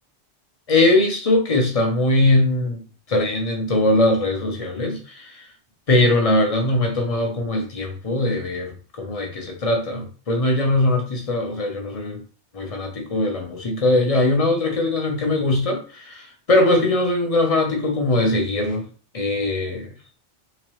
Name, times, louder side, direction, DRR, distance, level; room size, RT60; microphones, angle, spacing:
voice 1, 0.7-2.8 3.1-5.5 5.9-12.2 12.5-18.8 19.1-19.9, left 2 dB, 35° left, 2 dB, 0.8 m, -21 dB
3.5 x 3.0 x 3.1 m, 0.39 s
omnidirectional pair, 1.2 m